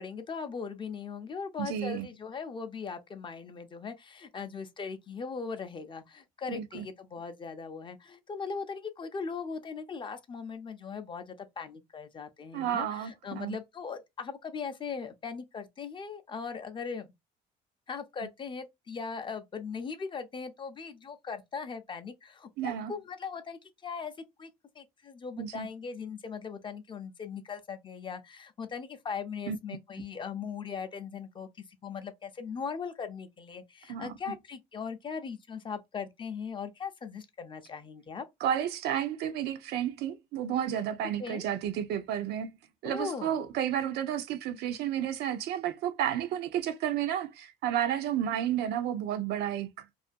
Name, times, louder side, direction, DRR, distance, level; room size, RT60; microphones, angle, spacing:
voice 1, 0.0-17.1 17.9-24.1 24.4-24.5 24.8-38.3 41.2-41.4 42.8-43.4, left 5 dB, 30° left, 0.4 m, -39 dB
voice 2, 1.6-2.1 6.5-6.9 12.5-13.6 22.6-22.9 25.4-25.7 29.5-29.6 33.9-34.1 38.4-42.5 42.8-49.9, right 10 dB, 75° right, 0.4 m, -31 dB
2.4 x 2.2 x 2.5 m
cardioid pair, 110°, 17 cm